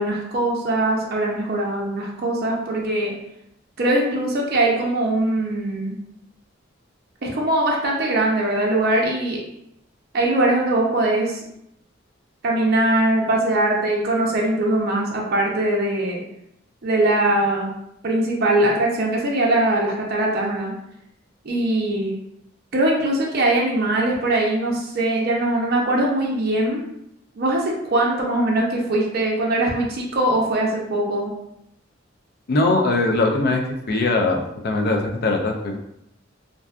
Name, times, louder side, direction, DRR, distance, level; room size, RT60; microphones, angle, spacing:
voice 1, 0.0-3.1 3.8-5.9 7.2-9.4 10.1-11.4 12.4-16.2 16.8-17.7 18.0-20.7 21.4-22.1 22.7-26.8 27.4-31.3, right 1 dB, 55° right, -2 dB, 0.5 m, -21 dB
voice 2, 32.5-35.8, left 2 dB, 55° left, 2 dB, 0.4 m, -21 dB
2.6 x 2.3 x 2.3 m, 0.78 s
head